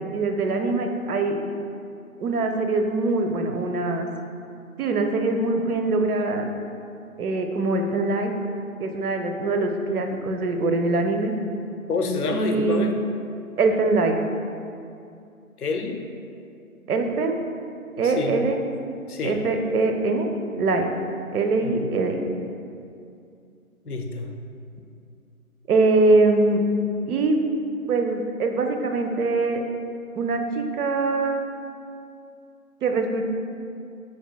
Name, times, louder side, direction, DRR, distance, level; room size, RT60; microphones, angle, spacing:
voice 1, 0.0-1.4 2.2-4.1 4.8-6.5 7.2-8.3 8.8-11.4 12.3-12.8 13.6-14.2 16.9-17.4 18.0-18.6 19.2-20.3 20.6-20.9 21.3-22.3 25.7-26.6 27.1-27.4 27.9-29.6 30.2-31.4 32.8-33.2, right 3 dB, 80° right, 4 dB, 0.6 m, -23 dB
voice 2, 11.9-12.9 15.6-16.1 18.0-18.4 19.1-19.4 21.6-21.9 23.9-24.3, left 3 dB, 90° left, 4 dB, 0.6 m, -27 dB
5.9 x 2.6 x 2.2 m, 2.5 s
figure-of-eight pair, 160°, 44 cm